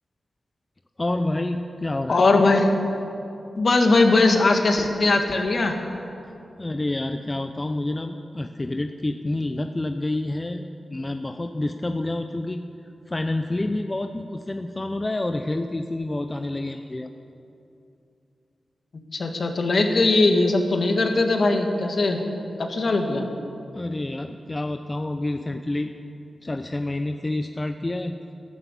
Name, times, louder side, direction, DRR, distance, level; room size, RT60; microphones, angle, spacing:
voice 1, 1.0-2.2 6.6-12.6 13.1-17.1 23.7-25.9 26.4-28.2, left 2 dB, 30° left, 7 dB, 0.7 m, -28 dB
voice 2, 2.1-2.7 3.6-5.8 19.1-22.2 22.6-23.2, left 3 dB, 60° left, 4 dB, 2.0 m, -20 dB
13.5 x 12.5 x 8.4 m, 2.7 s
cardioid pair, 60°, 0 cm